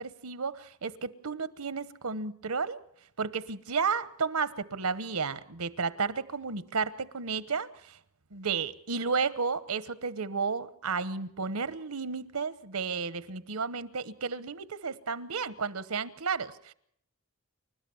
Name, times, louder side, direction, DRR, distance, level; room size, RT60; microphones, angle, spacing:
voice 1, 0.0-2.8 3.2-8.0 8.3-16.7, right 5 dB, 85° right, 1.0 m, -32 dB
29.5 x 13.0 x 7.0 m
head